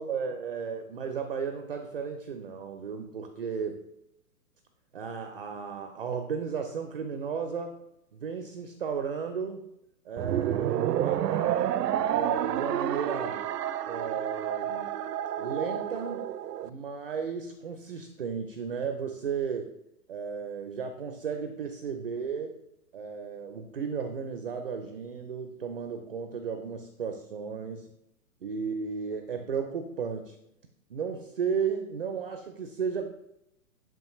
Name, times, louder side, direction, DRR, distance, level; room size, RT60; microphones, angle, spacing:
voice 1, 0.0-3.8 4.9-7.8 8.1-9.6 10.1-11.7 12.1-13.4 13.9-14.9 15.4-16.3 16.6-19.7 20.1-22.5 22.9-27.9 28.4-30.4 30.9-33.1, right 6 dB, 40° right, 6 dB, 0.5 m, -34 dB
sound 1, 10.2-16.7, right 11 dB, 85° right, 0.6 m, -29 dB
7.1 x 5.7 x 3.0 m, 0.84 s
hypercardioid pair, 165°, 47 cm